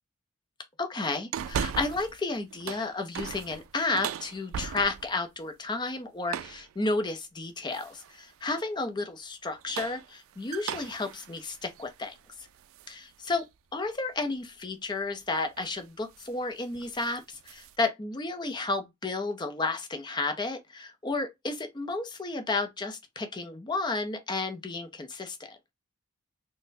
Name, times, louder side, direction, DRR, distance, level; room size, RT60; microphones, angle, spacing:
voice 1, 0.8-12.1 12.9-13.4 13.7-25.4, left 3 dB, 20° left, 0.5 m, -32 dB
sound 1, 1.3-2.2 2.5-5.2 6.3-6.7 7.7-8.2 9.5-12.9 13.4-13.5 15.0-15.2 15.5-15.8 16.1-16.4 16.7-17.8, right 8 dB, 75° right, 0.3 m, -38 dB
4.1 x 2.1 x 2.5 m
head